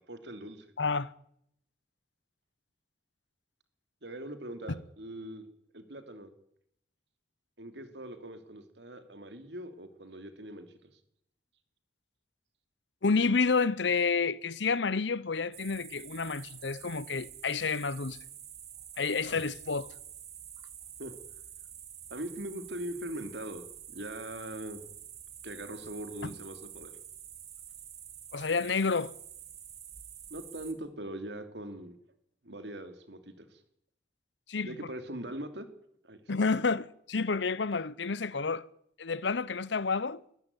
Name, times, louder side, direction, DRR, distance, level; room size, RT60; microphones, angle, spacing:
voice 1, 0.1-0.6 4.0-5.4 5.7-6.3 7.6-10.7 21.0-21.1 22.1-24.8 25.4-26.9 30.3-32.0 32.4-33.6 34.6-35.7 36.0-36.2, right 1 dB, 75° right, 3.0 m, -41 dB
voice 2, 0.8-1.1 4.7-4.8 13.0-18.2 19.0-19.9 28.3-29.1 34.5-34.7 36.3-38.7 39.0-40.2, left 4 dB, 85° left, 0.9 m, -29 dB
sound 1, 15.5-30.7, right 9 dB, 35° right, 2.6 m, -48 dB
21.5 x 14.5 x 9.7 m
head